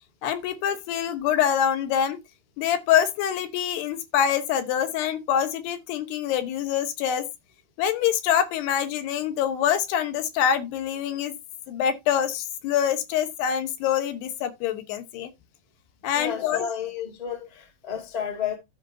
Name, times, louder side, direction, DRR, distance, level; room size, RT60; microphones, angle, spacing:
voice 1, 0.2-2.2 2.6-7.3 7.8-11.3 11.7-15.3 16.0-16.7, left 9 dB, 80° left, 3.2 m, -25 dB
voice 2, 16.1-18.6, left 8 dB, 25° left, 0.8 m, -31 dB
13.5 x 5.4 x 2.7 m
omnidirectional pair, 4.7 m